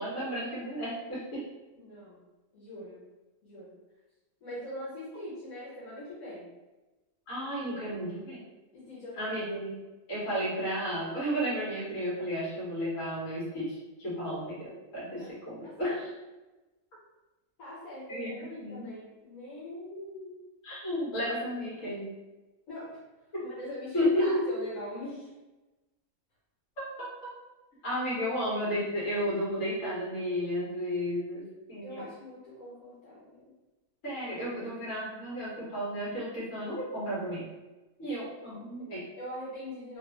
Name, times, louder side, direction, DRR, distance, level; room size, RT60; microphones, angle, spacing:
voice 1, 0.0-1.4 7.3-8.4 9.2-9.8 10.1-16.1 18.1-18.9 20.6-22.1 23.3-23.4 23.9-24.5 26.8-27.3 27.8-32.1 34.0-37.5 38.0-39.0, equal, 70° left, -8 dB, 1.8 m, -33 dB
voice 2, 1.8-2.2 2.5-3.0 3.4-3.7 4.4-6.5 8.7-9.3 15.2-15.3 15.6-16.0 17.6-20.3 22.7-23.0 23.4-25.3 31.8-33.5 38.5-38.9 39.2-40.0, left 1 dB, 90° left, -8 dB, 1.4 m, -42 dB
3.4 x 2.3 x 2.9 m, 1.1 s
omnidirectional pair, 1.4 m